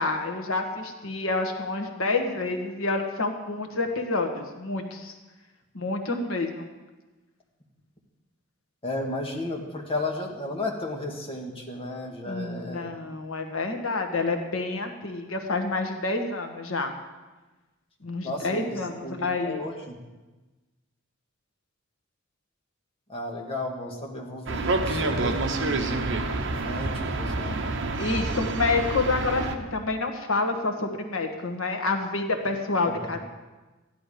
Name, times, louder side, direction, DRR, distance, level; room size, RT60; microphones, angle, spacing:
voice 1, 0.0-5.1 5.7-6.7 12.3-16.9 18.0-19.6 28.0-33.2, left 3 dB, 80° left, 5 dB, 1.5 m, -28 dB
voice 2, 8.8-12.9 18.2-20.0 23.1-27.6 32.8-33.1, left 1 dB, 30° left, 0 dB, 2.0 m, -34 dB
sound 1, 24.5-29.6, right 2 dB, 65° right, 1.1 m, -28 dB
14.5 x 11.0 x 5.1 m, 1.2 s
head